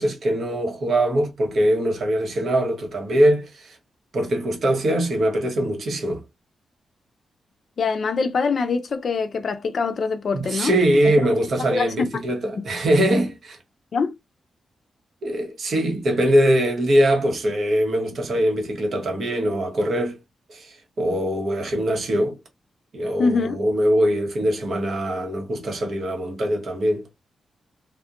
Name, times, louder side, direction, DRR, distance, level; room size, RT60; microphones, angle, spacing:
voice 1, 0.0-3.8 4.1-6.2 10.3-13.6 15.2-20.2 20.5-22.4 22.9-27.0, equal, 55° right, 0.8 m, -22 dB
voice 2, 7.8-10.7 11.7-12.1 12.5-12.6 13.9-14.2 23.2-23.6, left 4 dB, 50° left, 0.4 m, -23 dB
2.4 x 2.1 x 2.8 m
wide cardioid pair, 155°, 0 cm